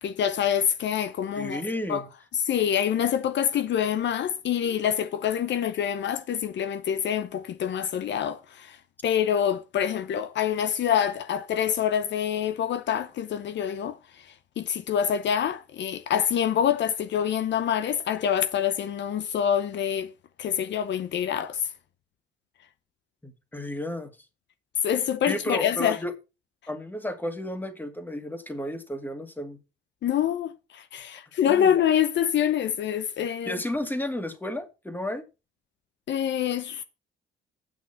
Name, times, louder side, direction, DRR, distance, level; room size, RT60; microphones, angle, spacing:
voice 1, 0.0-1.6 1.9-2.0 2.3-8.8 9.0-20.1 20.4-21.7 24.8-26.0 30.0-33.6 36.1-36.8, left 9 dB, 65° left, 0.8 m, -26 dB
voice 2, 1.3-2.1 23.2-24.1 25.3-26.1 26.7-29.6 31.5-31.7 33.5-35.2, left 1 dB, 10° left, 2.1 m, -32 dB
9.0 x 6.0 x 5.6 m
cardioid pair, 90°, 20 cm